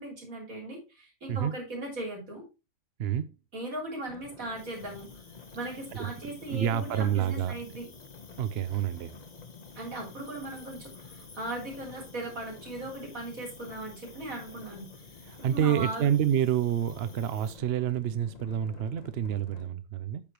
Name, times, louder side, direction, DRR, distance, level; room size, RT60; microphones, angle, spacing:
voice 1, 0.0-2.4 3.5-5.1 5.5-7.9 9.7-14.9 15.5-16.1, right 1 dB, 85° right, 4.0 m, -38 dB
sound 1, 4.1-19.7, left 4 dB, 35° left, 0.8 m, -50 dB
Cricket, 4.5-17.6, left 3 dB, 85° left, 2.8 m, -56 dB
voice 2, 6.5-7.5 8.4-9.1 15.3-20.2, right 9 dB, 60° right, 0.8 m, -28 dB
8.7 x 6.8 x 2.9 m
omnidirectional pair, 1.4 m